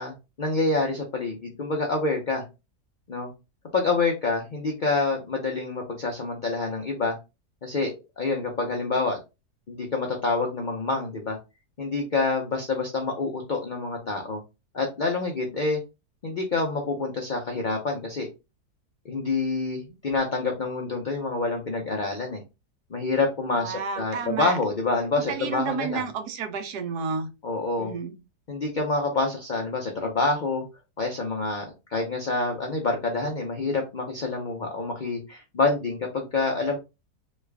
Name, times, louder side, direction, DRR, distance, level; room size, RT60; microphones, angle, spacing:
voice 1, 0.0-2.4 3.1-3.3 3.7-7.2 7.6-9.2 9.7-11.4 11.8-14.4 14.7-15.8 16.2-18.3 19.0-22.4 22.9-26.1 27.4-27.9 28.5-30.6 31.0-31.7 31.9-36.8, left 3 dB, 70° left, 0.4 m, -27 dB
voice 2, 23.6-24.6 25.2-27.3 27.8-28.1, right 6 dB, 75° right, 1.3 m, -31 dB
3.2 x 2.4 x 3.3 m
omnidirectional pair, 1.8 m